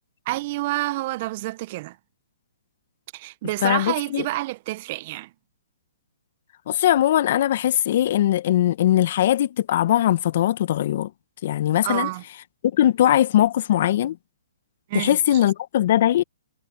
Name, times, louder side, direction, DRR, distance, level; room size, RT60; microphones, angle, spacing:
voice 1, 0.3-2.0 3.1-5.3 11.8-12.2 14.9-15.4, right 19 dB, 40° right, 1.1 m, -28 dB
voice 2, 3.6-4.2 6.7-11.1 11.4-12.1 12.7-14.2 14.9-16.2, left 12 dB, 55° left, 1.6 m, -20 dB
hypercardioid pair, 135°, 0 cm